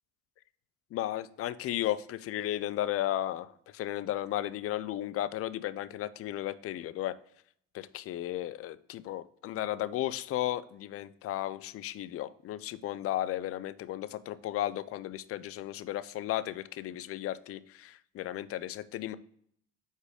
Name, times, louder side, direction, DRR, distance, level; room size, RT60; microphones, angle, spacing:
voice 1, 0.9-7.2 7.7-19.2, left 13 dB, 50° left, 15 dB, 0.5 m, -34 dB
5.1 x 4.1 x 5.0 m, 0.66 s
supercardioid pair, 75°, 30 cm